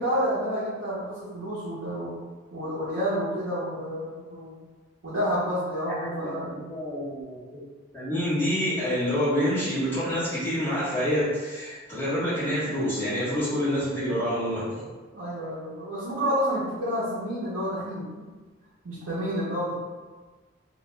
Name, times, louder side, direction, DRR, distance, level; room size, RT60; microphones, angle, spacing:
voice 1, 0.0-2.2 2.5-4.6 5.0-6.6 15.1-18.2 18.8-19.8, equal, 85° right, -9 dB, 0.7 m, -29 dB
voice 2, 5.8-7.6 7.9-14.9, equal, 10° left, -13 dB, 1.0 m, -27 dB
2.4 x 2.2 x 3.0 m, 1.3 s
head